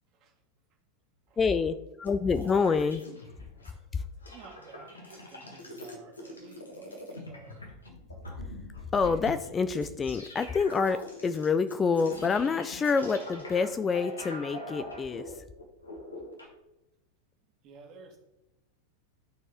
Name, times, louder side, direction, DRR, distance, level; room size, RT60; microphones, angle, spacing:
voice 1, 1.4-3.0 3.9-4.0 8.9-15.4, left 5 dB, 20° left, 11 dB, 0.3 m, -27 dB
sound 1, 2.0-3.7 4.0-16.5, left 1 dB, 75° left, 1.4 m, -43 dB
voice 2, 4.1-7.6 17.4-18.2, right 4 dB, 40° right, 2 dB, 1.7 m, -52 dB
13.0 x 4.5 x 3.0 m, 0.92 s
figure-of-eight pair, 90°, 0 cm